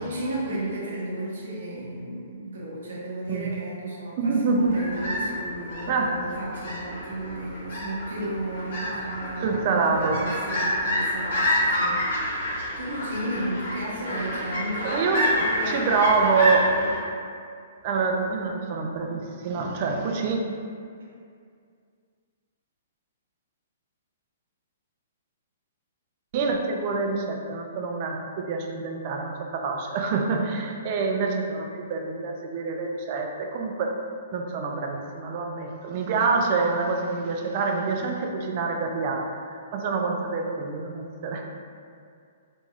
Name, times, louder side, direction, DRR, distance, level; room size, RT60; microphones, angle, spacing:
voice 1, 0.0-16.9, right 1 dB, 80° right, -6 dB, 0.9 m, -34 dB
voice 2, 4.2-4.8 5.9-6.2 9.4-10.2 14.8-15.3 15.7-16.9 17.8-20.4 26.3-33.9 34.3-41.4, right 4 dB, 45° right, 2 dB, 0.3 m, -26 dB
sound 1, 4.6-17.0, equal, 65° left, 1.2 m, -29 dB
3.1 x 2.5 x 2.3 m, 2.3 s
hypercardioid pair, 135°, 0 cm